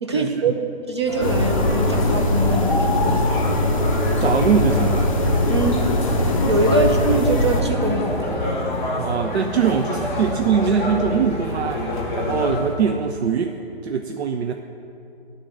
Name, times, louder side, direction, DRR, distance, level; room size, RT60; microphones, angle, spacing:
voice 1, 0.0-3.4 5.5-5.9 6.5-8.4, right 2 dB, 25° right, 3 dB, 0.5 m, -23 dB
sound 1, 1.1-12.7, left 1 dB, 10° left, 1.4 m, -26 dB
sound 2, 1.2-7.6, left 1 dB, 35° left, 0.5 m, -21 dB
voice 2, 4.1-5.1 9.0-11.8 12.1-14.5, right 6 dB, 85° right, 5 dB, 0.6 m, -22 dB
9.8 x 3.8 x 7.3 m, 2.7 s
hypercardioid pair, 170°, 32 cm